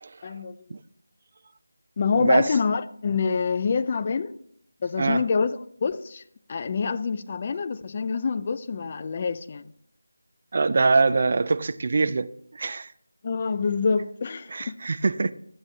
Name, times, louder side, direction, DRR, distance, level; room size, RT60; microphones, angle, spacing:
voice 1, 0.2-0.6 2.0-4.3 4.8-6.2 6.5-9.7 13.2-14.8, left 5 dB, 30° left, 0.3 m, -26 dB
voice 2, 10.5-12.9 14.5-15.3, right 3 dB, 40° right, 0.4 m, -23 dB
11.0 x 8.9 x 3.1 m
figure-of-eight pair, 165°, 0 cm